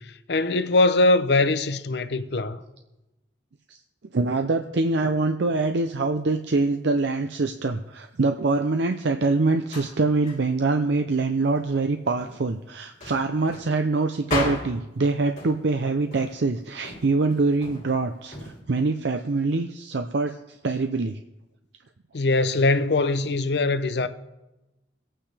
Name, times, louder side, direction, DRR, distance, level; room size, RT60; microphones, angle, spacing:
voice 1, 0.0-2.6 22.1-24.1, left 2 dB, 65° left, 0.7 m, -22 dB
voice 2, 4.1-20.4 20.6-21.2, right 3 dB, 70° right, 0.6 m, -24 dB
sound 1, 9.5-10.5 11.2-11.8 12.2-12.5 13.0-15.1 15.4-15.8 16.1-16.5 16.8-18.6, left 2 dB, 40° left, 2.4 m, -35 dB
22.0 x 9.0 x 3.4 m
head